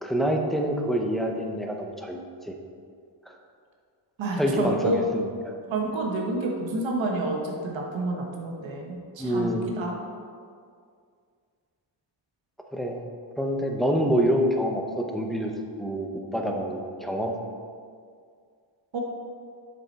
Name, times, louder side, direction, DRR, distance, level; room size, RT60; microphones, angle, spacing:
voice 1, 0.0-2.5 3.3-3.4 4.4-5.5 9.2-9.7 12.7-13.0 13.4-15.5 15.8-16.1 16.3-17.3, equal, ahead, 1 dB, 0.8 m, -26 dB
voice 2, 4.2-5.0 5.7-10.0 18.9-19.0, right 2 dB, 90° right, 0 dB, 1.3 m, -29 dB
7.6 x 6.0 x 4.1 m, 2.2 s
wide cardioid pair, 115°, 45 cm